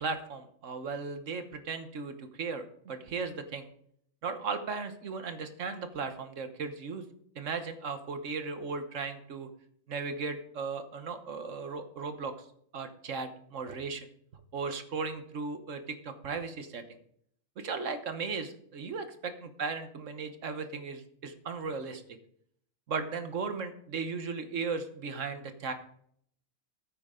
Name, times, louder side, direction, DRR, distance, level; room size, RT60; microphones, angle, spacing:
voice 1, 0.0-3.7 4.2-7.0 7.3-9.5 9.9-12.3 12.7-14.1 14.5-16.8 17.6-22.0 22.9-25.7, right 4 dB, 70° right, 8 dB, 1.5 m, -36 dB
14.5 x 8.7 x 3.7 m, 0.66 s
omnidirectional pair, 1.4 m